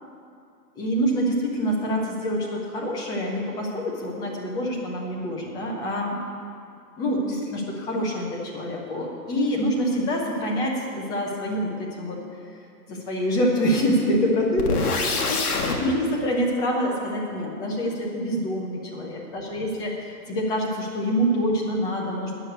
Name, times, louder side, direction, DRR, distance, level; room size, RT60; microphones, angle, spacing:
voice 1, 0.7-6.2 7.0-12.2 12.9-22.3, equal, 10° left, -1 dB, 0.7 m, -26 dB
sound 1, 14.6-15.8, left 4 dB, 65° left, 1.6 m, -25 dB
9.9 x 6.4 x 7.8 m, 2.5 s
hypercardioid pair, 145°, 49 cm